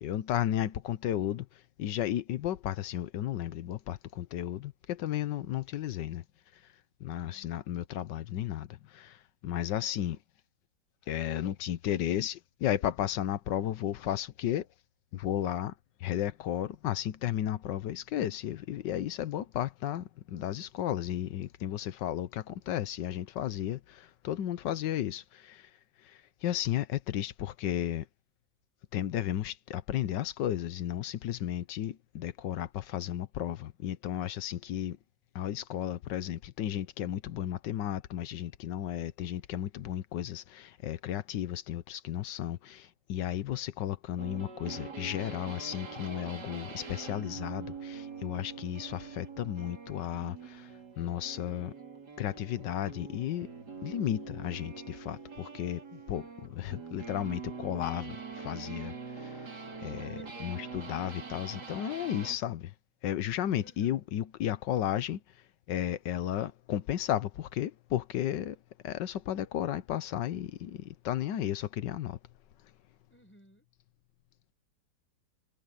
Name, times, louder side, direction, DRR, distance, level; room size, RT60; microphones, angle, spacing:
voice 1, 0.0-6.2 6.5-6.6 7.0-10.2 11.1-14.7 15.1-15.7 16.0-25.7 26.0-28.1 28.9-35.0 35.3-51.7 52.2-53.5 53.8-62.7 63.0-72.2, left 11 dB, 90° left, 1.5 m, -34 dB
voice 2, 7.1-7.6 60.2-60.5 63.6-64.1 73.1-73.7, equal, 5° left, 6.1 m, -57 dB
sound 1, 44.2-62.4, right 5 dB, 70° right, 3.5 m, -44 dB
omnidirectional pair, 1.9 m